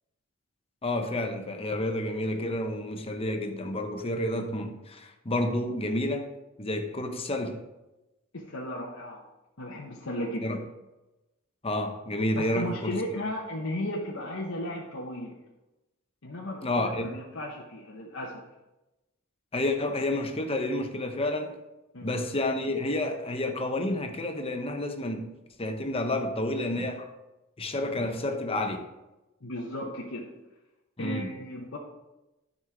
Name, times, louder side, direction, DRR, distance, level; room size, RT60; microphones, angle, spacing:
voice 1, 0.8-6.3 6.6-7.6 10.4-10.6 11.6-12.9 16.6-17.1 19.5-21.6 22.0-25.3 25.6-27.1 27.6-28.8 31.0-31.3, left 1 dB, 30° left, 5 dB, 0.9 m, -30 dB
voice 2, 8.3-9.2 9.6-10.6 12.4-15.4 16.2-18.4 21.9-22.2 29.4-30.3 31.0-31.8, left 1 dB, 80° left, -3 dB, 1.2 m, -35 dB
12.5 x 5.4 x 3.6 m, 1.0 s
head